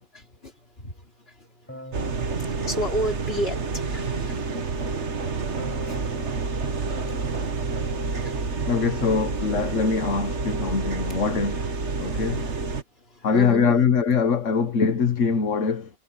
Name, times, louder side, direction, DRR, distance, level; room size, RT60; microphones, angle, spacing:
voice 1, 0.1-1.8 2.1-8.9 11.1-11.2 12.2-12.8 13.1-13.8, left 1 dB, 55° left, 3.9 m, -35 dB
Keyboard (musical), 1.7-4.0 5.6-9.9, equal, 10° left, 7.4 m, -44 dB
sound 1, 1.9-12.8, right 4 dB, 70° right, 1.8 m, -29 dB
voice 2, 8.7-11.7 12.0-12.5 13.2-15.9, left 5 dB, 80° left, 1.6 m, -23 dB
omnidirectional pair, 1.3 m